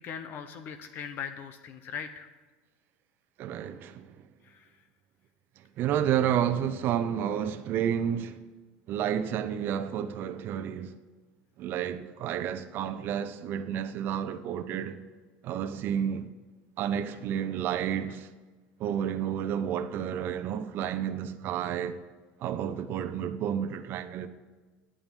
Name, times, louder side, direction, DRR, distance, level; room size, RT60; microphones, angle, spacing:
voice 1, 0.0-2.3 4.4-4.7, left 7 dB, 45° left, 0.9 m, -39 dB
voice 2, 3.4-4.2 5.8-8.4 8.9-10.9 11.6-15.0 15.4-16.3 16.8-18.3 18.8-22.0 22.4-24.3, right 9 dB, 50° right, 0.8 m, -30 dB
9.0 x 8.8 x 9.1 m
supercardioid pair, 115°, 5 cm